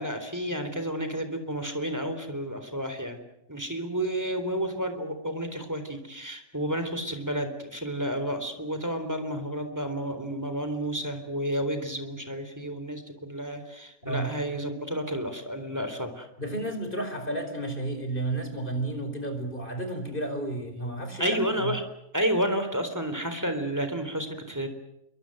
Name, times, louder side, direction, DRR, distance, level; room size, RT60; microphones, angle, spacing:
voice 1, 0.0-3.2 3.5-16.3 21.2-21.8 22.1-24.7, equal, 10° right, 8 dB, 3.9 m, -31 dB
voice 2, 16.4-21.7, right 2 dB, 35° left, 7 dB, 5.2 m, -32 dB
27.5 x 24.0 x 7.9 m, 0.81 s
omnidirectional pair, 1.5 m